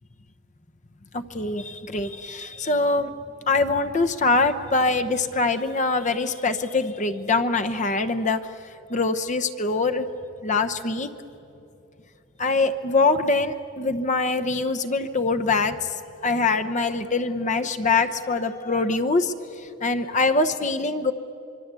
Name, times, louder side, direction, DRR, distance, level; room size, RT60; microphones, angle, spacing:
voice 1, 1.1-3.1 3.5-8.4 8.9-10.1 10.4-11.1 12.4-15.9 16.2-19.3 19.8-21.1, left 3 dB, 40° left, 8 dB, 0.9 m, -23 dB
24.5 x 24.5 x 8.3 m, 2.7 s
head